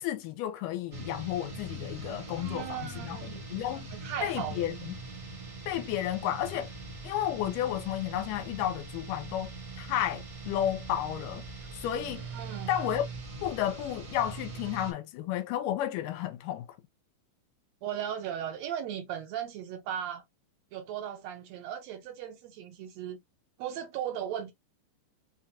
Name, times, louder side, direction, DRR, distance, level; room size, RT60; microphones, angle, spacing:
voice 1, 0.0-3.9 4.2-4.9 5.7-6.7 7.0-9.5 9.8-11.4 11.7-12.3 12.7-13.0 13.4-16.7, left 11 dB, 85° left, 2.2 m, -32 dB
sound 1, 0.9-14.9, right 3 dB, 55° right, 0.9 m, -42 dB
voice 2, 2.4-3.4 3.9-4.6 12.3-12.7 17.8-20.2 20.7-23.2 23.6-24.5, right 10 dB, 75° right, 1.6 m, -37 dB
sound 2, 6.7-13.6, left 4 dB, 40° left, 0.5 m, -52 dB
5.4 x 2.3 x 2.8 m
omnidirectional pair, 3.8 m